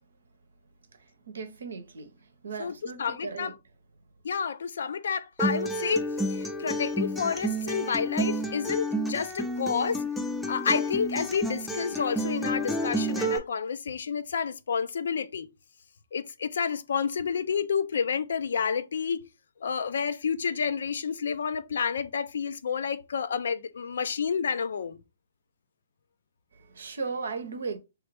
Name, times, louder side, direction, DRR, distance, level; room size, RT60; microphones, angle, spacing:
voice 1, 1.3-2.1 2.4-3.5 26.6-27.8, right 4 dB, 75° right, 0.7 m, -36 dB
voice 2, 2.6-3.6 4.2-10.0 10.5-15.5 16.1-19.2 19.6-25.0, left 6 dB, 70° left, 0.4 m, -30 dB
Acoustic guitar, 5.4-13.4, equal, 5° left, 0.5 m, -30 dB
3.1 x 2.4 x 3.2 m
hypercardioid pair, 130°, 0 cm